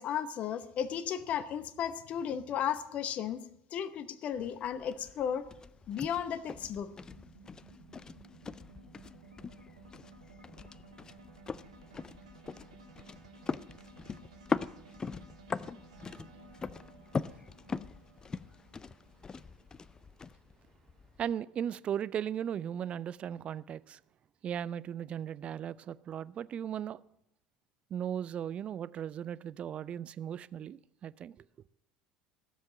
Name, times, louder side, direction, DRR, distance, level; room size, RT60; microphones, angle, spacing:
voice 1, 0.0-3.4 3.7-5.5 5.9-6.9, left 9 dB, 40° left, 0.9 m, -34 dB
sound 1, 4.3-21.3, left 5 dB, 20° left, 0.4 m, -42 dB
sound 2, 4.6-21.0, right 3 dB, 75° right, 1.8 m, -56 dB
voice 2, 21.2-24.0 24.4-27.0 27.9-31.4, right 9 dB, 35° right, 0.4 m, -37 dB
15.5 x 7.4 x 7.4 m
figure-of-eight pair, 65°, 3 cm